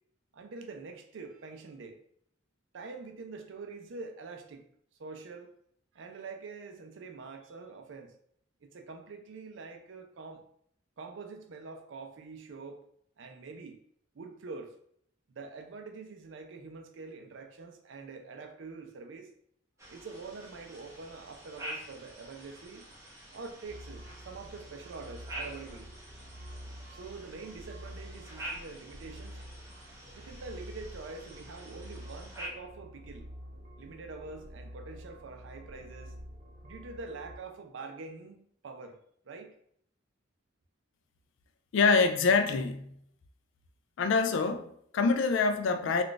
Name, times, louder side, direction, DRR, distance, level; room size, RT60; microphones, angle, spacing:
voice 1, 0.3-2.0 2.7-4.6 5.0-5.5 5.9-8.2 8.6-10.4 11.0-12.8 13.2-13.8 14.1-14.7 15.3-19.3 19.9-22.9 23.3-25.9 26.9-29.4 30.1-33.3 33.8-36.1 36.6-38.4 38.6-39.0 39.3-39.5, right 4 dB, 75° right, 0.4 m, -45 dB
sound 1, 19.8-32.5, right 1 dB, 15° right, 0.6 m, -47 dB
sound 2, 23.6-37.4, equal, 40° right, 0.9 m, -48 dB
voice 2, 41.7-42.9 44.0-46.0, left 4 dB, 75° left, 0.3 m, -25 dB
2.4 x 2.3 x 3.7 m
head